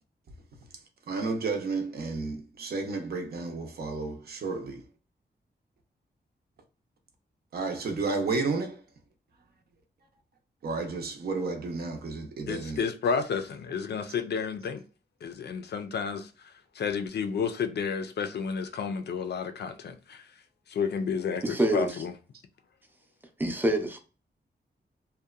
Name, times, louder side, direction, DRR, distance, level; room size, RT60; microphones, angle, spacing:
voice 1, 1.1-4.8 7.5-8.8 10.6-12.8, right 3 dB, 60° right, 0.6 m, -32 dB
voice 2, 12.5-14.8 15.2-16.3 16.8-20.2 20.7-22.1, left 6 dB, 65° left, 0.4 m, -31 dB
voice 3, 21.4-22.0 23.4-24.0, right 1 dB, 10° right, 0.5 m, -26 dB
2.7 x 2.2 x 2.3 m
wide cardioid pair, 150°, 18 cm